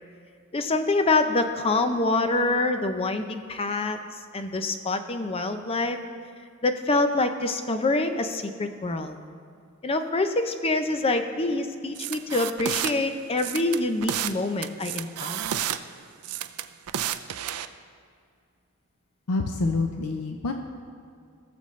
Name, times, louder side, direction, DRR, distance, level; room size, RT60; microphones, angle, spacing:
voice 1, 0.5-4.0 4.3-6.0 6.6-9.2 9.8-15.6, left 2 dB, 25° left, 8 dB, 0.5 m, -26 dB
sound 1, 12.0-12.9 13.4-14.4 14.6-15.8 16.2-17.7, right 11 dB, 80° right, 0.4 m, -30 dB
voice 2, 19.3-20.5, left 3 dB, 85° left, 4 dB, 0.6 m, -27 dB
18.0 x 6.9 x 3.2 m, 2.2 s
head